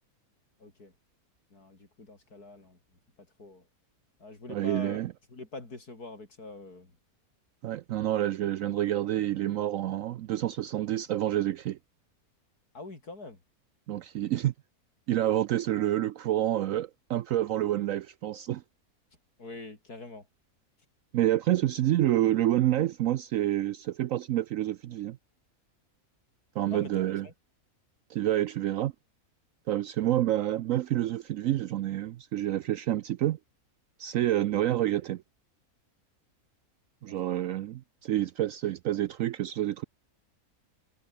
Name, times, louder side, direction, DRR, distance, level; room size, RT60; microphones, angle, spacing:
voice 1, 0.6-0.9 1.5-2.8 3.4-3.7 4.2-5.0 5.3-6.9 8.6-8.7 12.7-13.4 19.4-20.3 26.7-26.9 27.2-27.3 37.1-37.3, left 3 dB, 90° left, 5.5 m, -44 dB
voice 2, 4.5-5.1 7.6-11.8 13.9-14.5 15.1-18.6 21.1-25.2 26.6-27.3 28.1-28.9 29.7-33.4 34.0-35.2 37.0-39.8, right 13 dB, 70° right, 0.9 m, -28 dB
omnidirectional pair, 1.6 m